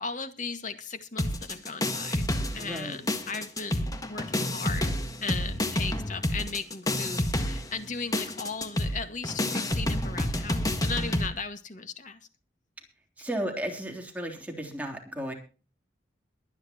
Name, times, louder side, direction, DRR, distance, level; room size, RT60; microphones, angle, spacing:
voice 1, 0.0-2.3 2.5-12.2, left 4 dB, 45° left, 8 dB, 2.0 m, -37 dB
sound 1, 1.2-2.8 3.1-11.3, left 1 dB, 20° left, 1.7 m, -29 dB
voice 2, 2.6-3.0 13.2-15.3, right 1 dB, 10° right, 1 dB, 3.4 m, -34 dB
23.0 x 9.8 x 3.0 m, 0.36 s
head